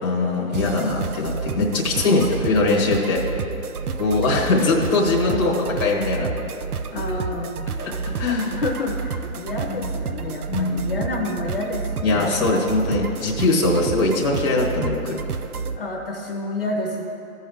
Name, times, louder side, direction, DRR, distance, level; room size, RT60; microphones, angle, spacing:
voice 1, 0.0-3.2 4.0-6.3 7.8-7.9 8.2-8.6 9.7-9.8 10.5-11.0 12.0-15.2, left 3 dB, 15° left, -5 dB, 1.0 m, -21 dB
sound 1, 0.5-15.8, right 5 dB, 80° right, 0.7 m, -30 dB
voice 2, 1.9-2.4 5.3-5.4 6.9-7.7 8.5-12.4 13.4-13.8 15.7-17.0, left 2 dB, 40° left, 0 dB, 0.9 m, -29 dB
15.5 x 5.5 x 3.5 m, 2.8 s
hypercardioid pair, 170°, 44 cm